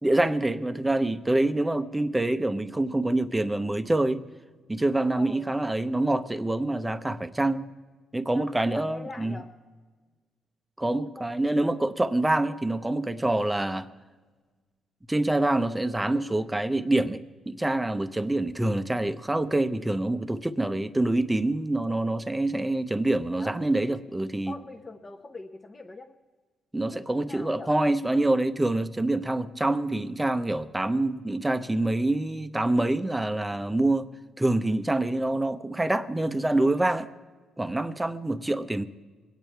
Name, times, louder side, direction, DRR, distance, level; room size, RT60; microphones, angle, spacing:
voice 1, 0.0-4.2 4.7-7.6 8.1-9.4 10.8-13.9 15.1-24.5 26.7-34.1 34.4-37.1 37.6-38.8, right 2 dB, 10° right, 0.8 m, -26 dB
voice 2, 5.2-5.5 8.3-9.5 10.8-11.3 23.3-23.6 24.5-26.2 26.8-27.7, left 3 dB, 25° left, 0.9 m, -43 dB
23.0 x 8.7 x 4.6 m
cardioid pair, 90°, 0 cm